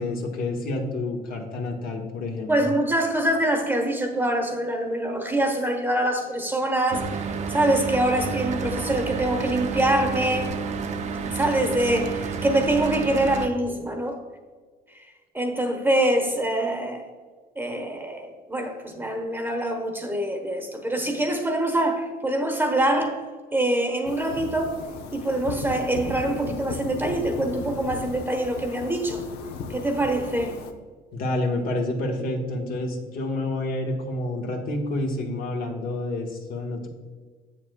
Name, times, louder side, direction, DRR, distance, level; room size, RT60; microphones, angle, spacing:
voice 1, 0.0-2.7 31.1-36.9, left 2 dB, 60° left, 1 dB, 1.3 m, -29 dB
voice 2, 2.5-10.5 11.3-14.2 14.9-15.1 15.3-17.0 17.6-23.2 23.5-24.8 25.1-29.2 29.7-30.6, right 1 dB, 10° right, 3 dB, 1.0 m, -24 dB
Mechanical fan, 6.9-13.5, right 5 dB, 45° right, 0.5 m, -30 dB
sound 1, 24.0-30.7, left 4 dB, 75° left, 0.7 m, -36 dB
7.7 x 7.2 x 2.2 m, 1.5 s
cardioid pair, 110°, 17 cm